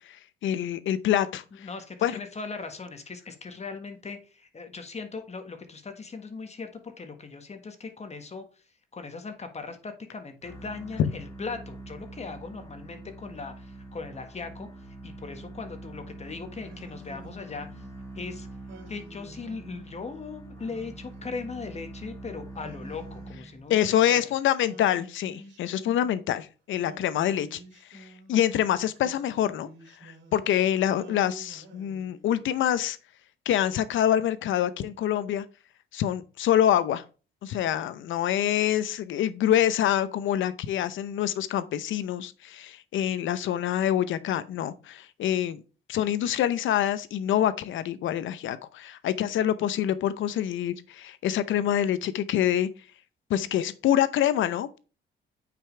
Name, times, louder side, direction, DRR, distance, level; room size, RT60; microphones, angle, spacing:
voice 1, 0.4-1.4 2.0-2.2 11.0-11.1 23.7-27.6 27.9-29.7 30.0-33.0 33.5-35.4 35.9-37.0 37.4-45.6 45.9-52.7 53.3-54.8, left 11 dB, 75° left, 0.7 m, -26 dB
voice 2, 1.6-8.4 8.9-14.7 15.0-17.8 18.1-18.5 18.9-24.2, left 4 dB, 35° left, 1.5 m, -39 dB
sound 1, 10.4-23.8, right 2 dB, 15° left, 2.6 m, -44 dB
Singing, 16.6-18.0 18.7-20.0 20.6-21.9 22.6-24.1 24.6-26.4 26.8-28.5 28.9-30.6 31.0-32.6, right 2 dB, 70° right, 2.8 m, -49 dB
9.0 x 5.2 x 3.3 m
cardioid pair, 90°, 20 cm